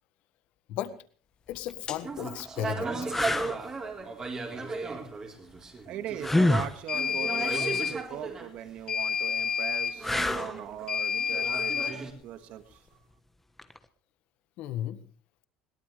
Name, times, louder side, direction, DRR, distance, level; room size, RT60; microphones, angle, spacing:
voice 1, 1.5-2.9 14.6-15.0, left 11 dB, 65° left, 12 dB, 1.5 m, -34 dB
sound 1, 1.5-1.7 2.4-2.5 3.1-3.6 6.2-6.8 10.0-10.6 13.6-13.8, left 2 dB, 10° left, 1.3 m, -26 dB
sound 2, 1.9-2.0 6.9-8.0 8.9-10.0 10.9-12.0, left 7 dB, 35° left, 1.5 m, -29 dB
sound 3, 2.0-8.5 10.0-12.1, right 4 dB, 30° right, 4.0 m, -36 dB
voice 2, 5.9-12.8, right 11 dB, 60° right, 10 dB, 1.8 m, -40 dB
21.5 x 17.5 x 3.4 m, 0.41 s
supercardioid pair, 115°, 2 cm